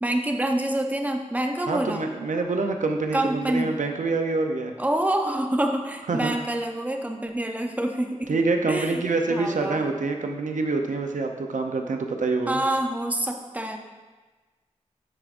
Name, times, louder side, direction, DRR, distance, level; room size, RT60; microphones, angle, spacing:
voice 1, 0.0-2.1 3.1-3.7 4.8-8.3 8.7-9.0 9.3-9.8 12.5-13.8, right 1 dB, 10° right, 3 dB, 0.7 m, -26 dB
voice 2, 1.7-4.7 6.1-6.3 8.3-12.6, right 3 dB, 85° right, 4 dB, 0.6 m, -26 dB
12.0 x 4.7 x 2.5 m, 1.3 s
wide cardioid pair, 60°, 13 cm